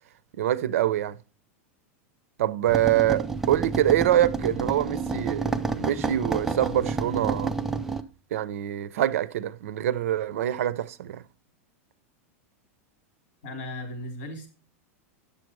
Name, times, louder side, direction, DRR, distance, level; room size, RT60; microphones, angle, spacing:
voice 1, 0.4-1.2 2.4-7.5 8.3-11.2, right 12 dB, 80° right, 0.6 m, -25 dB
sound 1, 2.7-8.0, right 4 dB, 5° right, 0.4 m, -29 dB
voice 2, 13.4-14.5, left 1 dB, 40° left, 4.0 m, -36 dB
9.1 x 7.0 x 4.6 m
supercardioid pair, 170°, 8 cm